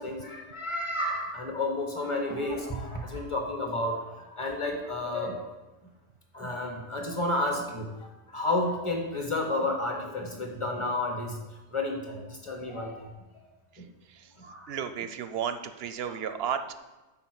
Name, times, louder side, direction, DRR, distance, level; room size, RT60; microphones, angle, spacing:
voice 1, 0.0-5.5 6.3-11.4 11.7-13.1 13.8-13.9 14.4-14.7 16.1-16.2, left 2 dB, 25° left, 2 dB, 1.3 m, -31 dB
voice 2, 14.7-16.8, right 8 dB, 65° right, 10 dB, 0.7 m, -33 dB
9.3 x 4.3 x 6.2 m, 1.1 s
omnidirectional pair, 1.2 m